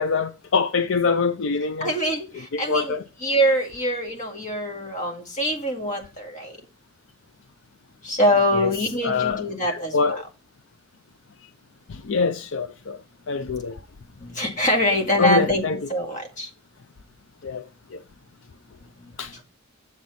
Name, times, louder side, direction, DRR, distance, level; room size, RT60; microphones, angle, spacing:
voice 1, 0.0-2.0 2.5-3.0 8.5-8.7 9.0-10.2 11.9-13.0 13.3-13.8 15.2-15.8 17.4-18.0 19.2-19.3, left 5 dB, 60° left, 0.5 m, -24 dB
voice 2, 1.8-2.9 3.2-6.5 8.0-10.2 14.2-15.6 15.9-16.5 19.0-19.4, equal, 35° left, 2.1 m, -24 dB
7.7 x 7.4 x 4.1 m
head